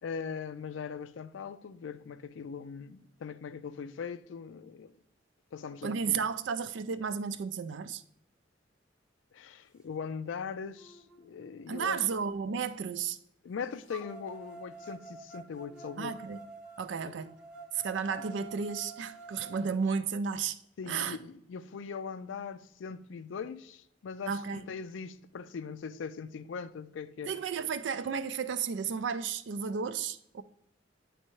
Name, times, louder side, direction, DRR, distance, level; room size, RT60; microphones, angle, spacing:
voice 1, 0.0-4.9 5.5-6.2 9.3-12.1 13.4-16.2 17.0-17.2 18.1-18.2 20.8-27.7, left 6 dB, 80° left, 0.4 m, -40 dB
voice 2, 5.8-8.0 11.7-13.2 16.0-16.4 16.8-17.3 17.7-20.6 20.9-21.2 24.3-24.6 27.3-30.4, right 6 dB, 70° right, 0.4 m, -33 dB
sound 1, 10.1-10.2 10.7-12.6 13.9-19.9, right 3 dB, 5° right, 0.6 m, -49 dB
9.4 x 3.3 x 3.1 m
head